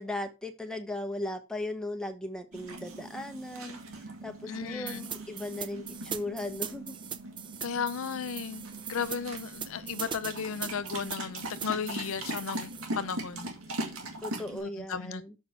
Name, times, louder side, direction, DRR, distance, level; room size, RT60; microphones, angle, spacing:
voice 1, 0.0-3.8 4.2-7.0 14.2-15.3, left 1 dB, 5° left, 0.9 m, -37 dB
sound 1, 2.5-14.6, right 2 dB, 70° right, 2.0 m, -41 dB
voice 2, 4.5-5.1 7.6-12.7 13.0-13.5 14.5-15.2, left 6 dB, 65° left, 0.5 m, -35 dB
sound 2, 4.9-12.9, right 8 dB, 20° right, 0.4 m, -41 dB
7.1 x 5.1 x 4.5 m
head